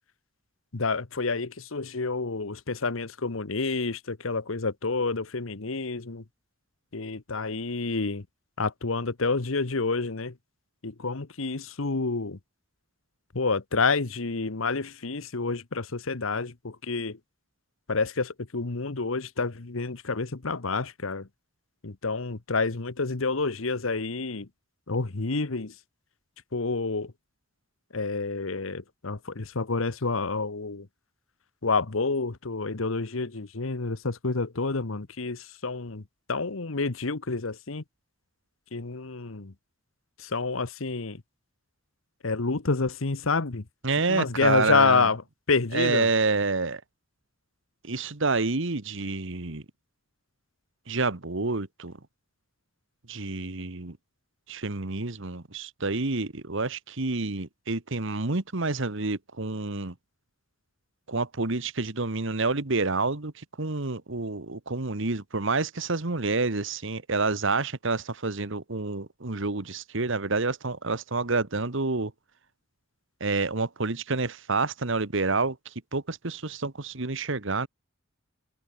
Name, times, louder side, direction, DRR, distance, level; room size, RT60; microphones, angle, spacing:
voice 1, 0.7-6.2 6.9-8.2 8.6-10.3 10.8-12.4 13.3-17.2 17.9-21.2 21.8-24.5 24.9-25.7 26.5-27.1 27.9-30.8 31.6-36.0 36.3-37.8 38.7-39.5 40.2-41.2 42.2-43.6 44.1-45.2 45.5-46.1, left 4 dB, 85° left, 1.2 m, -28 dB
voice 2, 43.8-45.1 45.7-46.8 47.8-49.6 50.9-51.9 53.1-54.0 54.5-59.9 61.1-72.1 73.2-75.6 75.9-77.7, right 3 dB, 65° right, 1.5 m, -28 dB
head